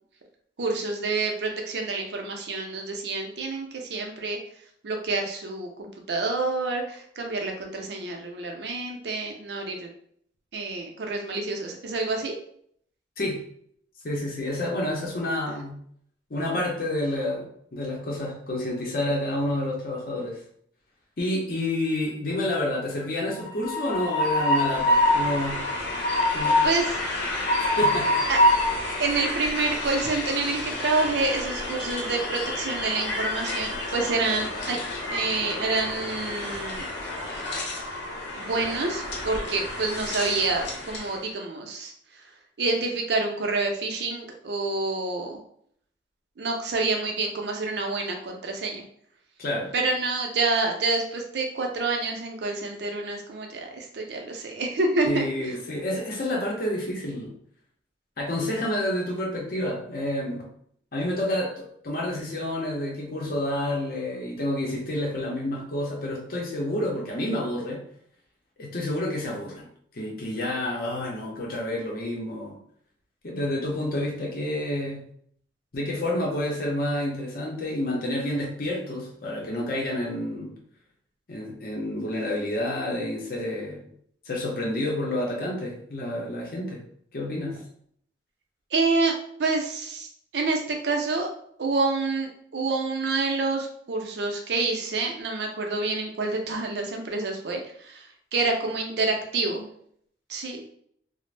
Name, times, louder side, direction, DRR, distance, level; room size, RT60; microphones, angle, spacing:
voice 1, 0.6-4.4 4.8-9.9 10.5-12.3 26.6-27.0 28.3-28.4 29.0-34.8 35.1-36.8 38.4-41.9 42.6-45.4 46.4-48.8 49.7-55.5 88.7-89.1 89.4-90.1 90.3-91.3 91.6-99.7 100.3-100.7, right 3 dB, 65° right, 2 dB, 0.5 m, -28 dB
voice 2, 14.0-15.8 16.3-20.4 21.2-25.6 26.3-26.6 27.8-28.1 49.4-49.7 55.1-57.3 58.2-60.5 60.9-67.8 68.6-69.7 69.9-72.6 73.2-75.0 75.7-80.5 81.3-83.9 84.3-86.8 87.1-87.6, left 1 dB, 50° left, -2 dB, 0.6 m, -29 dB
Train, 23.4-41.2, left 1 dB, 85° left, 0.8 m, -27 dB
2.4 x 2.0 x 3.2 m, 0.66 s
head